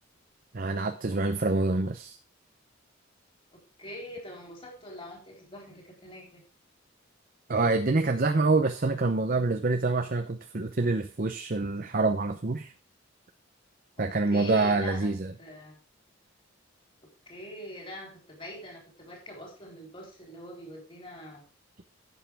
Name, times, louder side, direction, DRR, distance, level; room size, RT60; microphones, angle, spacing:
voice 1, 0.5-2.2 7.5-12.7 14.0-15.3, right 3 dB, 45° right, 6 dB, 0.7 m, -26 dB
voice 2, 3.8-6.4 14.0-15.1 15.4-15.8 17.3-21.5, equal, 25° left, 0 dB, 4.1 m, -43 dB
11.5 x 8.4 x 3.5 m, 0.35 s
head